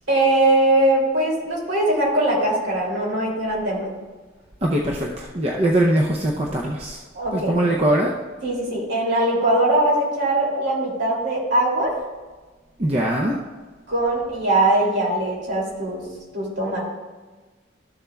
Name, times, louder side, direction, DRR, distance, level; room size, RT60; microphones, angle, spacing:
voice 1, 0.1-3.9 7.1-7.5 8.4-11.9 13.9-16.0 16.3-16.8, right 1 dB, 65° right, -3 dB, 2.8 m, -21 dB
voice 2, 4.6-7.0 7.3-8.1 12.8-13.4, right 1 dB, 30° right, -2 dB, 0.6 m, -21 dB
13.5 x 7.1 x 2.3 m, 1.3 s
head